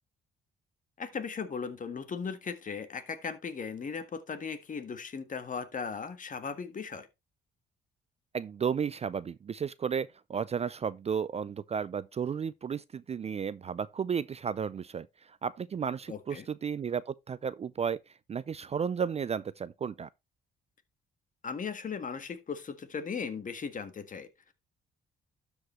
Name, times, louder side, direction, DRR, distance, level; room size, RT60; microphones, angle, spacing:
voice 1, 1.0-7.1 16.1-16.5 21.4-24.5, left 5 dB, 40° left, 1.5 m, -37 dB
voice 2, 8.3-18.0 18.3-20.1, right 7 dB, 30° right, 0.4 m, -33 dB
12.5 x 5.0 x 3.1 m
cardioid pair, 90°, 20 cm